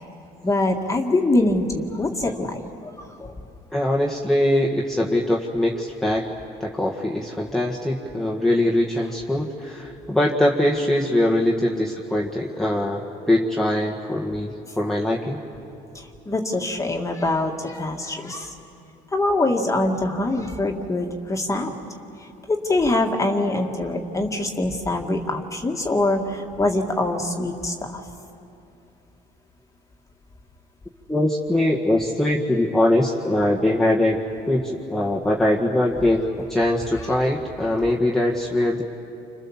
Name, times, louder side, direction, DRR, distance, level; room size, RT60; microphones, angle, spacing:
voice 1, 0.4-2.9 3.2-3.3 16.3-18.5 19.1-21.8 22.5-28.0, left 2 dB, 20° left, 1 dB, 2.0 m, -24 dB
voice 2, 3.7-6.3 6.6-13.0 13.3-15.4 31.1-34.2 34.5-36.2 36.5-38.8, left 1 dB, ahead, -3 dB, 1.7 m, -22 dB
29.5 x 26.5 x 7.3 m, 2.7 s
cardioid pair, 110°, 17 cm